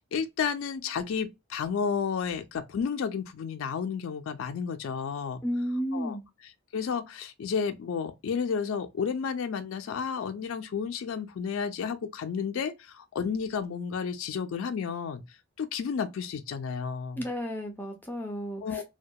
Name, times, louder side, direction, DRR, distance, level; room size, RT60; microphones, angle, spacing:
voice 1, 0.0-5.4 5.9-6.2 6.7-15.2 15.6-17.2 18.6-18.8, left 6 dB, 75° left, 0.3 m, -32 dB
voice 2, 5.4-6.3 17.2-18.8, equal, 10° left, 0.4 m, -32 dB
2.2 x 2.1 x 2.6 m
head